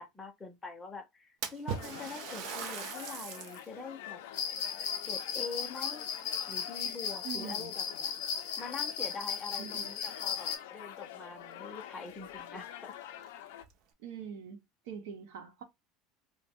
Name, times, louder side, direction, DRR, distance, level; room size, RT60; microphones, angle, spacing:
voice 1, 0.0-4.2 5.0-6.1 6.5-8.1 8.6-12.9, left 4 dB, 10° left, 0.5 m, -44 dB
Splash splatter, 1.4-3.7 4.2-4.3 5.2-6.3 6.6-7.1 7.9-8.0 8.5-8.6 10.7-10.8 11.1-11.2 11.8-11.9 12.3-12.4 13.1-13.7, right 7 dB, 45° right, 0.5 m, -41 dB
sound 1, 1.7-13.6, left 12 dB, 80° left, 0.3 m, -47 dB
sound 2, 4.3-10.6, left 7 dB, 60° left, 0.7 m, -36 dB
voice 2, 7.2-7.7 9.6-9.9 14.0-15.6, right 8 dB, 80° right, 0.8 m, -43 dB
2.6 x 2.0 x 3.5 m
cardioid pair, 175°, 0 cm